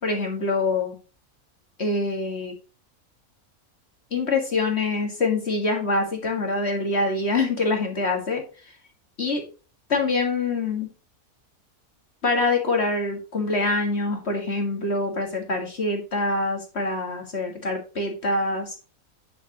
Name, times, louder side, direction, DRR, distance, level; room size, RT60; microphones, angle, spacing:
voice 1, 0.0-1.0 1.8-2.5 4.1-8.4 9.2-9.4 9.9-10.9 12.2-18.8, left 3 dB, 45° left, 3 dB, 2.1 m, -25 dB
9.4 x 7.6 x 3.0 m, 0.34 s
omnidirectional pair, 1.6 m